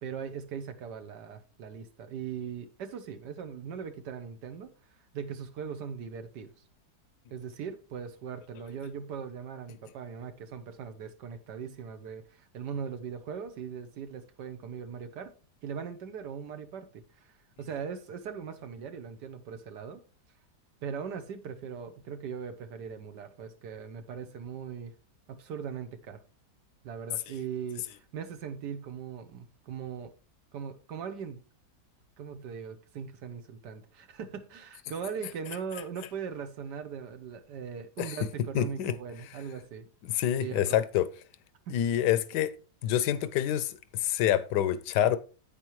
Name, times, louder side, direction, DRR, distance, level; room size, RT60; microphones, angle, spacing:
voice 1, 0.0-4.7 5.1-6.5 7.3-15.3 15.6-20.0 20.8-24.9 25.3-26.2 26.8-30.1 30.5-31.4 32.2-39.9 40.4-40.8 41.7-41.8, right 7 dB, 85° right, 1.5 m, -40 dB
voice 2, 38.5-38.9 40.1-41.1 41.7-42.5 42.8-45.2, left 11 dB, 85° left, 1.3 m, -27 dB
10.5 x 8.5 x 3.1 m
omnidirectional pair, 1.7 m